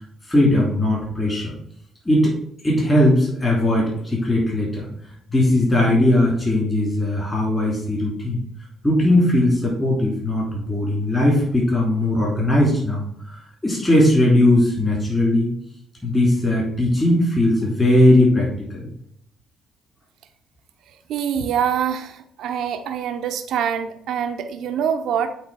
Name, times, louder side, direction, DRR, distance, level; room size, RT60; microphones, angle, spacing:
voice 1, 0.3-1.5 2.0-2.3 2.6-4.9 5.3-8.4 8.8-15.5 16.0-18.9, left 1 dB, 20° left, -4 dB, 2.8 m, -19 dB
voice 2, 21.1-25.3, right 8 dB, 80° right, 6 dB, 0.5 m, -25 dB
8.0 x 3.2 x 4.7 m, 0.70 s
cardioid pair, 90°, 0 cm